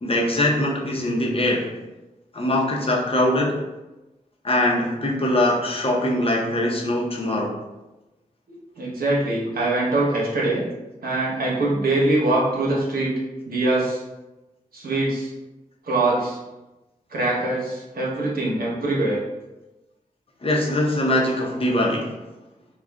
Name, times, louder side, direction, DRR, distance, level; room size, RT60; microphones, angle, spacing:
voice 1, 0.0-1.7 2.3-3.6 4.4-7.5 20.4-22.1, left 1 dB, 40° left, -2 dB, 0.7 m, -22 dB
voice 2, 8.8-10.6 11.0-13.1 13.5-14.0 14.7-15.3 15.9-16.4 17.1-19.2, right 2 dB, 80° right, -5 dB, 0.9 m, -23 dB
3.7 x 2.3 x 2.3 m, 1.0 s
cardioid pair, 50°, 15 cm